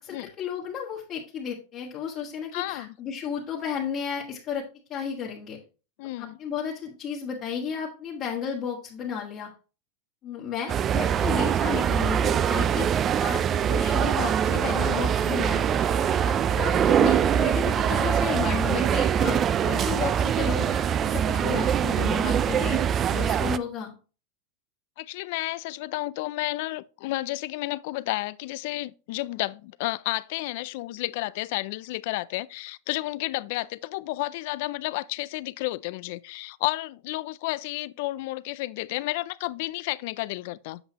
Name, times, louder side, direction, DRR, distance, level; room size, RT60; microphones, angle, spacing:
voice 1, 0.0-4.6 4.9-5.6 6.2-9.5 10.2-15.9 16.2-23.9, left 7 dB, 40° left, 1.6 m, -33 dB
voice 2, 2.5-2.9 6.0-6.4 25.0-40.8, left 19 dB, 65° left, 0.3 m, -31 dB
sound 1, 10.7-23.6, right 8 dB, 30° right, 0.4 m, -23 dB
7.9 x 5.5 x 2.9 m
supercardioid pair, 130°, 0 cm